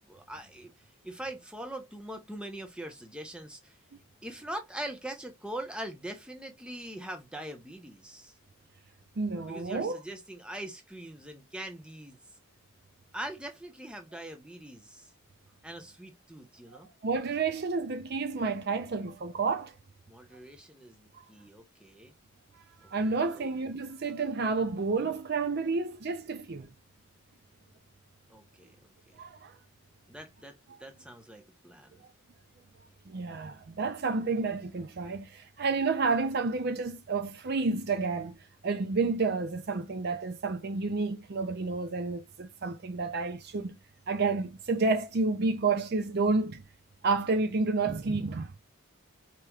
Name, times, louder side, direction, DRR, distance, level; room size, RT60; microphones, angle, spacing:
voice 1, 0.1-3.8 4.2-8.3 9.5-12.2 13.1-15.1 15.6-16.9 20.1-22.1 22.8-23.5 28.3-29.2 30.1-32.0, right 1 dB, 5° right, 0.7 m, -42 dB
voice 2, 9.2-10.0 17.0-19.7 22.9-26.7 29.2-29.5 33.1-38.3 38.6-43.8 44.1-46.6 47.0-48.5, right 4 dB, 45° right, 0.5 m, -30 dB
4.8 x 3.0 x 2.3 m
head